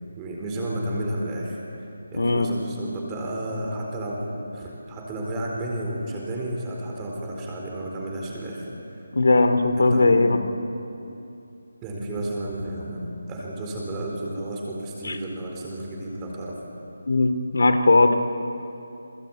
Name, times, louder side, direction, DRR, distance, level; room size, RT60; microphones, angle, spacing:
voice 1, 0.2-1.6 2.1-9.0 9.8-10.3 11.8-16.6, right 1 dB, 10° right, -2 dB, 4.0 m, -32 dB
voice 2, 2.1-2.5 9.1-10.4 15.0-15.2 17.1-18.2, left 3 dB, 70° left, 9 dB, 2.4 m, -19 dB
28.5 x 21.5 x 8.8 m, 2.8 s
figure-of-eight pair, 175°, 0 cm